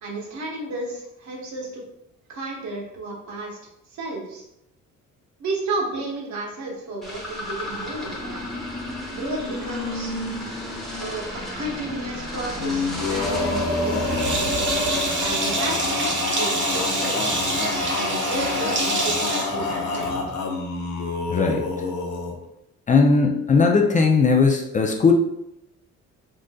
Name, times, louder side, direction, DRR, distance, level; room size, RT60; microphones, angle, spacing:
voice 1, 0.0-1.8 2.3-3.6 3.9-4.4 5.4-8.5 9.1-10.2 11.0-14.6 15.2-17.5 18.0-20.2, right 2 dB, 70° right, -1 dB, 1.0 m, -32 dB
sound 1, 7.0-16.5, left 1 dB, ahead, 0.9 m, -32 dB
Male singing, 12.5-22.3, left 3 dB, 70° left, 0.7 m, -27 dB
Sink (filling or washing), 13.9-20.3, right 2 dB, 40° right, 0.9 m, -27 dB
voice 2, 21.3-21.7 22.9-25.1, left 4 dB, 25° left, 2 dB, 0.3 m, -18 dB
3.6 x 2.5 x 2.2 m, 0.81 s
cardioid pair, 90°, 30 cm